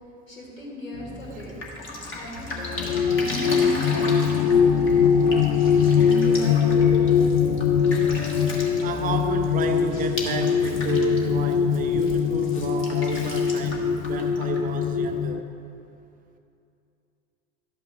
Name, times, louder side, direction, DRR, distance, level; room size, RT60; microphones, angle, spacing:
voice 1, 0.3-1.5 2.1-5.4 6.0-7.4, equal, 80° left, -3 dB, 2.1 m, -35 dB
sound 1, 0.9-10.3, equal, 60° left, 1.6 m, -40 dB
Drip, 1.2-15.3, left 2 dB, 30° left, 1.4 m, -37 dB
sound 2, 2.6-15.4, left 7 dB, 45° left, 0.4 m, -22 dB
voice 2, 8.8-15.4, right 6 dB, 20° right, 6 dB, 0.5 m, -32 dB
12.0 x 8.4 x 2.4 m, 2.6 s
figure-of-eight pair, 75°, 39 cm